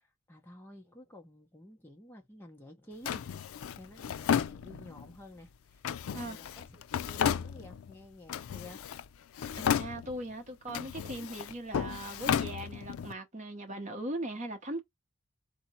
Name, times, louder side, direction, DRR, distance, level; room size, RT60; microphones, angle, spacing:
voice 1, 0.0-8.8, left 1 dB, 10° left, 1.0 m, -52 dB
Drawer open or close, 3.1-5.1 5.8-7.9 8.3-9.1 9.3-10.3 10.7-13.1, left 8 dB, 85° left, 0.4 m, -33 dB
voice 2, 9.5-14.8, right 1 dB, 35° right, 0.9 m, -39 dB
4.2 x 2.8 x 4.2 m
head